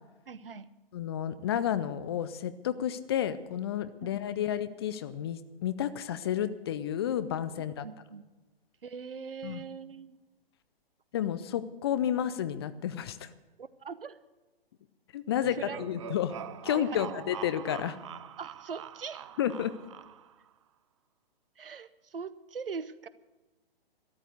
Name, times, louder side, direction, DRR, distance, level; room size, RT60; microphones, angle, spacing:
voice 1, 0.3-0.7 4.0-4.4 7.8-8.2 8.8-10.2 13.6-14.2 15.4-15.8 16.7-17.2 18.4-19.3 21.6-23.1, right 5 dB, 65° right, 16 dB, 0.9 m, -41 dB
voice 2, 0.9-7.8 9.4-9.6 11.1-13.3 15.1-16.3 16.6-18.0 19.4-19.7, left 10 dB, 25° left, 13 dB, 0.5 m, -31 dB
sound 1, 15.4-20.5, right 10 dB, 30° right, 0.5 m, -44 dB
13.5 x 11.5 x 8.1 m, 1.1 s
figure-of-eight pair, 125°, 30 cm